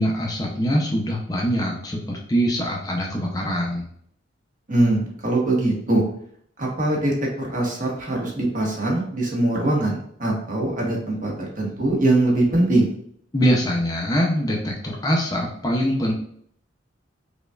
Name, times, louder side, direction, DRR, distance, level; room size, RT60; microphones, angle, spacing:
voice 1, 0.0-3.8 13.3-16.1, equal, 20° left, -2 dB, 0.5 m, -23 dB
voice 2, 4.7-6.0 6.6-12.9, right 2 dB, 45° right, -2 dB, 1.0 m, -22 dB
5.1 x 2.3 x 2.3 m, 0.64 s
head